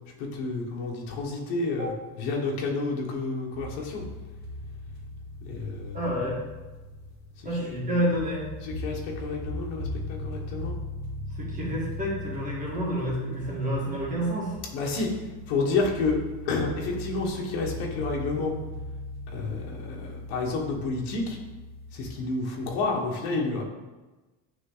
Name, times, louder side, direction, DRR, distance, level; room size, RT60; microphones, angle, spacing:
voice 1, 0.2-1.9 2.2-4.0 5.4-6.0 8.6-10.7 14.7-15.1 15.5-16.2 16.4-18.5 19.3-21.4 21.9-23.6, left 3 dB, 70° left, 0 dB, 1.7 m, -30 dB
sound 1, 3.5-22.0, left 1 dB, 45° right, 1.5 m, -39 dB
voice 2, 5.9-6.4 7.4-8.4 11.4-14.6, equal, 20° right, -5 dB, 1.9 m, -29 dB
9.1 x 3.7 x 4.0 m, 1.2 s
cardioid pair, 180°, 40 cm